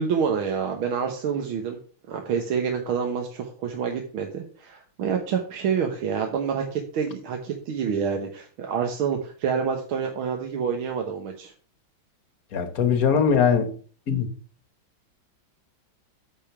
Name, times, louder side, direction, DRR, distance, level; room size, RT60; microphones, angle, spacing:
voice 1, 0.0-1.8 2.1-11.5, right 6 dB, 85° right, 2.0 m, -27 dB
voice 2, 12.5-13.7 14.1-14.3, left 7 dB, 50° left, 1.5 m, -21 dB
8.6 x 5.3 x 6.0 m
omnidirectional pair, 2.2 m